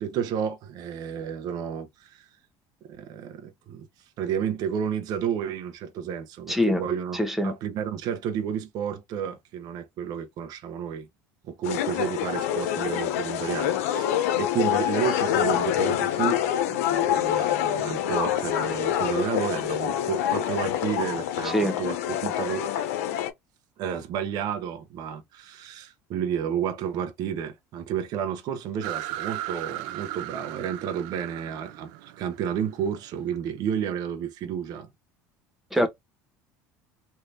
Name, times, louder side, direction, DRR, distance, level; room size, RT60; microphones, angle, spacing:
voice 1, 0.0-2.3 2.8-3.9 4.2-11.1 11.4-14.1 14.4-22.6 23.8-34.9 35.8-35.9, right 8 dB, 60° right, 0.8 m, -31 dB
voice 2, 6.5-6.8 7.1-7.5 21.5-21.7 35.7-35.9, left 1 dB, 5° right, 1.1 m, -23 dB
sound 1, 11.6-23.3, left 11 dB, 90° left, 0.8 m, -26 dB
sound 2, 28.8-33.4, right 15 dB, 75° right, 0.5 m, -37 dB
3.3 x 2.7 x 2.7 m
supercardioid pair, 100°, 8 cm